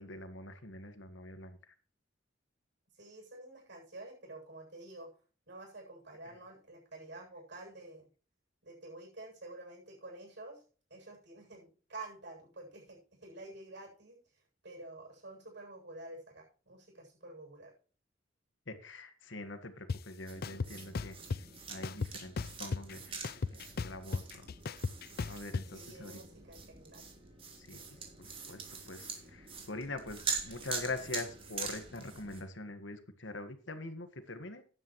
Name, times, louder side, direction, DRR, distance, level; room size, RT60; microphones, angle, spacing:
voice 1, 0.0-1.6 18.7-21.2 21.7-24.5 25.3-26.2 27.6-27.8 28.2-34.8, left 2 dB, 70° left, 9 dB, 1.7 m, -44 dB
voice 2, 2.9-5.1 5.5-8.1 8.6-10.6 10.9-17.7 25.7-27.1 27.7-27.9, right 2 dB, 65° right, 0 dB, 7.9 m, -49 dB
sound 1, 19.9-20.0 20.4-21.4 21.8-22.9 23.2-25.6, left 4 dB, 55° left, 0.5 m, -35 dB
sound 2, 20.3-32.4, right 5 dB, 30° right, 3.4 m, -44 dB
14.0 x 11.0 x 3.2 m, 0.38 s
head